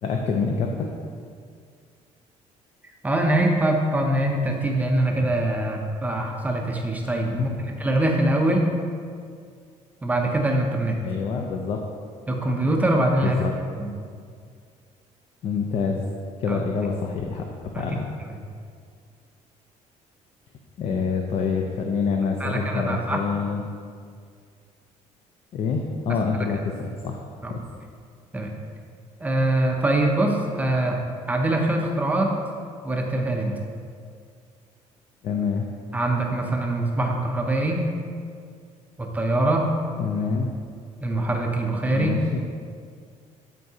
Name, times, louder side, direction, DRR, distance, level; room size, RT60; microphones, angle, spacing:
voice 1, 0.0-0.9 11.0-11.8 13.2-13.5 15.4-16.0 16.4-18.1 20.8-23.6 25.5-27.2 27.5-27.6 35.2-35.7 40.0-40.5 41.9-42.2, left 5 dB, 50° left, 2 dB, 0.5 m, -26 dB
voice 2, 3.0-8.8 10.0-11.0 12.3-13.4 13.8-13.9 16.5-16.6 17.7-17.9 18.3-18.4 22.4-23.2 26.1-26.2 27.4-27.5 28.3-28.5 29.2-31.0 31.3-32.3 32.8-33.5 35.9-37.8 39.0-39.7 41.0-42.1, right 1 dB, 10° right, 1 dB, 0.6 m, -23 dB
12.5 x 4.6 x 2.8 m, 2.2 s
cardioid pair, 160°, 13 cm